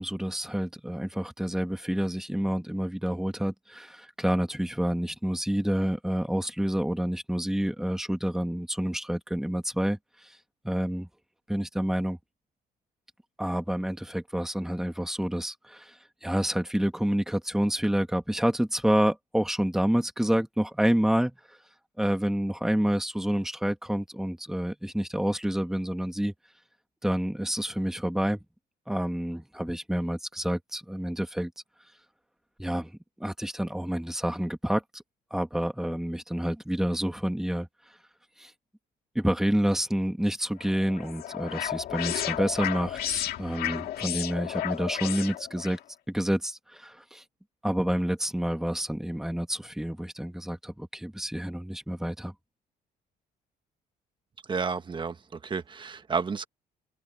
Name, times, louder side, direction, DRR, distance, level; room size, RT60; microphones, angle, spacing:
voice 1, 0.0-10.4 10.6-11.1 11.5-12.2 13.4-21.4 22.0-26.3 27.0-28.4 28.9-31.5 32.6-32.9 33.2-35.0 35.3-37.7 38.4-38.5 39.1-45.8 46.1-47.2 47.6-52.3, equal, 5° right, 2.3 m, -28 dB
sound 1, 40.6-45.8, left 12 dB, 65° left, 2.2 m, -33 dB
voice 2, 54.5-56.5, right 5 dB, 30° right, 1.4 m, -31 dB
cardioid pair, 110°, 17 cm